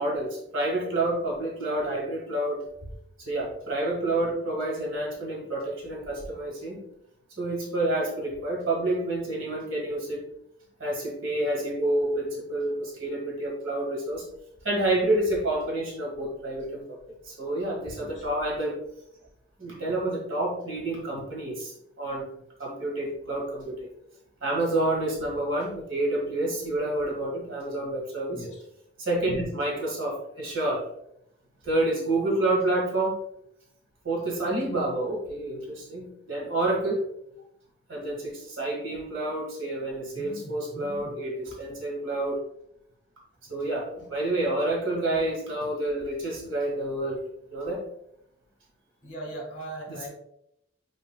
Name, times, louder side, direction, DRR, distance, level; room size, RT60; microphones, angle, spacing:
voice 1, 0.0-2.6 3.2-6.8 7.4-10.2 10.8-14.2 14.6-17.0 17.2-18.8 19.6-22.3 22.6-23.8 24.4-28.4 29.0-30.8 31.6-33.2 34.0-37.0 37.9-42.4 43.5-47.2 47.5-47.8 49.9-50.1, right 1 dB, 90° right, -2 dB, 1.7 m, -28 dB
voice 2, 28.3-28.6 40.1-41.1 49.0-50.1, right 1 dB, 35° left, 0 dB, 1.6 m, -40 dB
5.6 x 3.9 x 2.2 m, 0.78 s
head